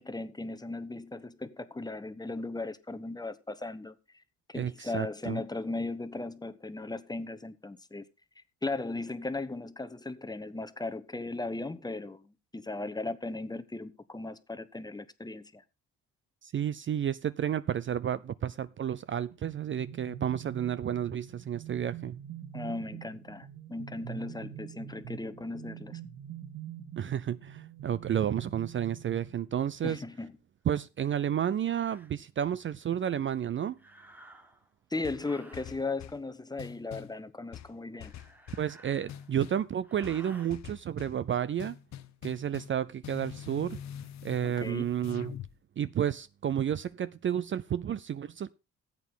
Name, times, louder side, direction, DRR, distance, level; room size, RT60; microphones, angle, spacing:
voice 1, 0.0-4.0 4.5-8.0 8.6-15.6 22.5-26.0 29.8-30.3 34.9-38.1 44.4-44.9, left 2 dB, 15° left, 1.0 m, -37 dB
voice 2, 4.5-5.4 16.4-22.2 27.0-30.0 30.7-33.8 38.6-41.8 42.2-43.8 44.2-45.4 45.8-48.5, right 9 dB, 40° right, 0.5 m, -31 dB
sound 1, 19.3-29.8, right 10 dB, 75° right, 2.3 m, -44 dB
sound 2, 30.7-30.8 31.6-32.1 33.7-34.7 35.1-35.8 37.9-39.4 39.8-40.5, right 1 dB, 5° right, 1.5 m, -54 dB
sound 3, 35.0-36.2 36.6-37.2 37.5-38.7 39.1-39.7 40.0-41.2 41.6-42.8 43.0-45.5, left 9 dB, 65° left, 0.9 m, -45 dB
14.0 x 8.3 x 3.8 m
cardioid pair, 90°, 30 cm